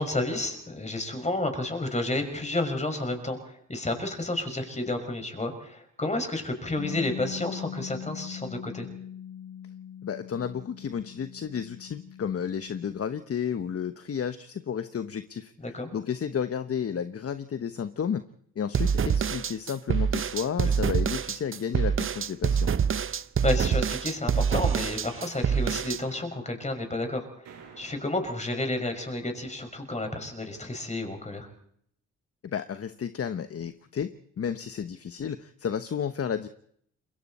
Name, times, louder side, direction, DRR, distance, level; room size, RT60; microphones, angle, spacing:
voice 1, 0.0-3.4 3.7-8.9 15.6-15.9 20.6-20.7 23.4-27.5 27.8-31.5, left 2 dB, 20° left, 6 dB, 6.0 m, -31 dB
Bass guitar, 6.8-13.0, left 9 dB, 70° left, 6.8 m, -41 dB
voice 2, 10.0-15.5 15.9-18.3 18.6-22.7 32.4-36.5, left 7 dB, 45° left, 11 dB, 1.1 m, -32 dB
sound 1, 18.7-26.0, right 7 dB, 40° right, 0.8 m, -26 dB
sound 2, 27.4-29.4, right 6 dB, 85° right, 7.1 m, -52 dB
27.5 x 22.0 x 4.3 m, 0.65 s
cardioid pair, 70°, 32 cm